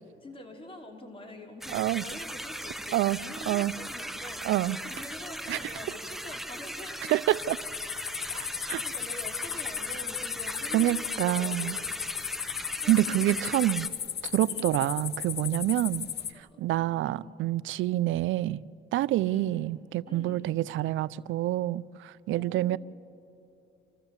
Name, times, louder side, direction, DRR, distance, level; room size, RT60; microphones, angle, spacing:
voice 1, 0.2-4.4 4.8-7.1 8.3-11.9 12.8-13.5 14.5-14.8 16.3-17.2 19.2-19.7 20.1-20.6 22.3-22.8, left 1 dB, 25° left, 3.3 m, -46 dB
sound 1, 1.5-6.5, right 7 dB, 55° right, 1.3 m, -53 dB
sound 2, 1.6-13.9, right 1 dB, ahead, 0.8 m, -39 dB
voice 2, 1.7-2.0 2.9-3.2 3.5-3.7 4.4-4.8 5.5-5.6 7.1-7.6 8.7-8.8 10.7-11.8 12.9-13.9 14.2-16.0 16.6-18.6 18.9-22.8, right 15 dB, 80° right, 0.4 m, -27 dB
sound 3, 7.3-16.3, left 9 dB, 55° left, 0.9 m, -36 dB
27.5 x 14.5 x 7.2 m
cardioid pair, 90°, 20 cm